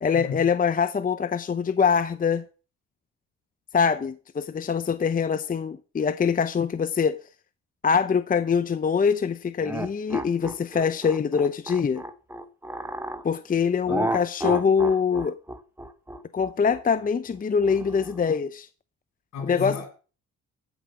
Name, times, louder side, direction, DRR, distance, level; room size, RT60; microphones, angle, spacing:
voice 1, 0.0-2.4 3.7-7.2 7.8-12.0 13.2-15.3 16.3-18.7 19.4-19.7, left 6 dB, 30° left, 0.7 m, -24 dB
sound 1, 9.6-13.2 13.9-18.4, right 1 dB, 5° right, 1.2 m, -32 dB
voice 2, 19.3-19.9, left 5 dB, 65° left, 6.0 m, -33 dB
15.0 x 5.1 x 7.3 m
cardioid pair, 90°, 30 cm